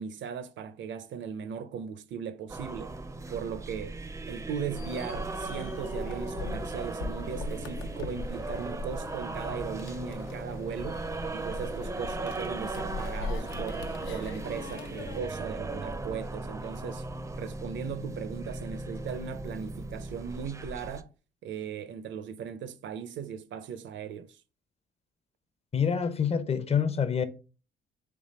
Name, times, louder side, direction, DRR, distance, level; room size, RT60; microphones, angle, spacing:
voice 1, 0.0-2.9 3.3-4.0 4.3-11.0 11.3-17.0 17.4-21.1 21.4-24.4, right 7 dB, 70° right, 0.5 m, -38 dB
sound 1, 2.5-21.0, right 2 dB, 15° right, 0.4 m, -37 dB
sound 2, 4.7-15.2, left 3 dB, 80° left, 0.6 m, -41 dB
voice 2, 25.7-27.2, left 7 dB, 30° left, 0.6 m, -26 dB
3.5 x 3.3 x 4.0 m
cardioid pair, 90°, 20 cm